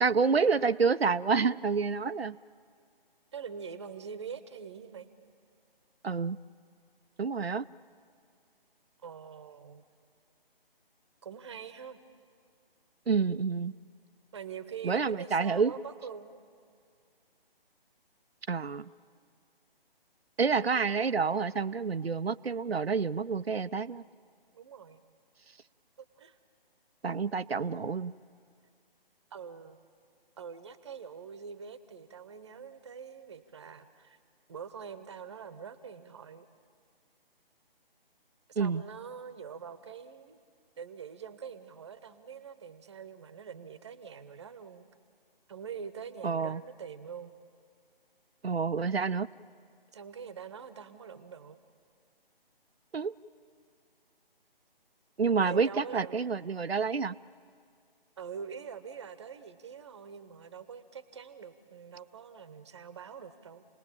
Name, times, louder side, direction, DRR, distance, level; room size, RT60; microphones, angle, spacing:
voice 1, 0.0-2.4 6.0-6.4 7.2-7.6 13.1-13.8 14.8-15.7 18.5-18.9 20.4-24.0 27.0-28.1 38.6-38.8 46.2-46.6 48.4-49.3 52.9-53.1 55.2-57.1, right 5 dB, 85° right, 13 dB, 0.6 m, -28 dB
voice 2, 3.3-5.1 9.0-9.8 11.2-12.0 14.3-16.4 24.5-25.0 26.0-26.4 29.3-29.8 30.4-34.2 34.5-36.5 38.5-40.4 40.8-44.8 45.5-47.3 49.9-51.6 55.4-56.3 58.2-63.6, right 7 dB, 30° right, 13 dB, 0.9 m, -44 dB
28.5 x 19.5 x 8.7 m, 2.2 s
figure-of-eight pair, 145°, 30 cm